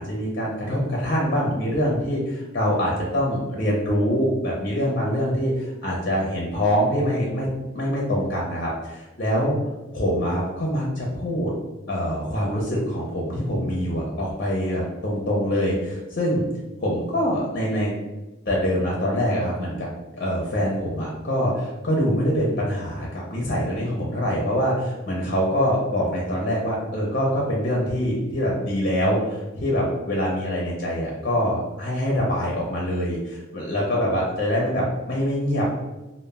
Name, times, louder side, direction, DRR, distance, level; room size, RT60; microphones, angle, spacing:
voice 1, 0.0-7.5 7.7-9.6 9.9-11.5 11.9-16.4 16.8-17.9 18.5-19.9 20.1-35.7, equal, 45° left, -3 dB, 0.5 m, -24 dB
2.1 x 2.1 x 3.3 m, 1.1 s
head